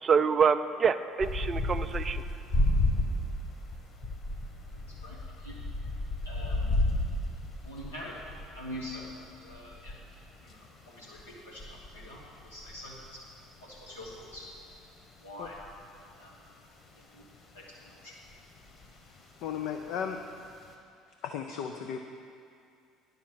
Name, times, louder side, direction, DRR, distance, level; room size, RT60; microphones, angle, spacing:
voice 1, 0.0-2.2, right 6 dB, 30° right, 12 dB, 0.4 m, -26 dB
sound 1, 1.2-16.5 17.1-17.9 18.3-19.6 19.9-20.7, left 1 dB, 35° left, 1.4 m, -33 dB
voice 2, 4.8-5.6 6.2-6.7 7.6-8.2 8.5-10.0 10.4-13.0 13.6-14.5 15.2-15.6 16.1-16.4 16.9-17.3 17.5-18.1, left 1 dB, 85° left, -6 dB, 1.1 m, -45 dB
voice 3, 19.4-20.2 21.2-22.0, left 8 dB, 55° left, 5 dB, 0.5 m, -35 dB
9.3 x 5.7 x 7.2 m, 2.4 s
figure-of-eight pair, 60°, 0 cm